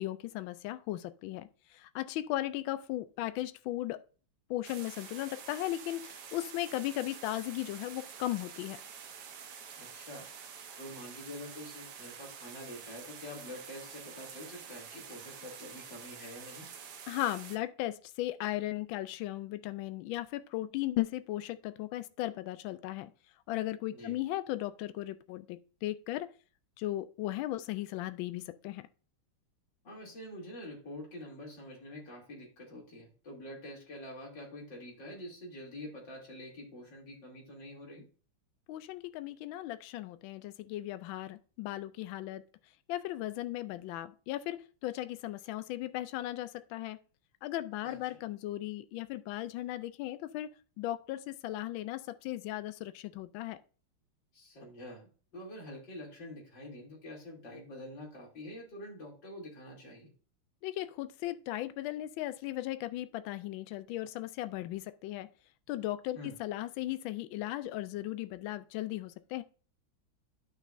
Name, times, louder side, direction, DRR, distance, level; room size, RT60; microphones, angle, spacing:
voice 1, 0.0-4.0 4.5-8.8 17.1-23.1 23.5-26.3 26.8-28.9 38.7-42.4 42.9-47.0 47.4-53.6 60.6-65.3 65.7-69.4, left 15 dB, 75° left, 1.3 m, -37 dB
sound 1, 4.6-17.6, right 7 dB, 60° right, 1.4 m, -48 dB
voice 2, 9.8-10.3 10.8-16.7 23.9-24.2 29.8-38.1 47.8-48.2 54.3-60.1 66.2-66.3, left 1 dB, 60° left, 3.6 m, -46 dB
11.5 x 6.2 x 2.6 m
omnidirectional pair, 2.3 m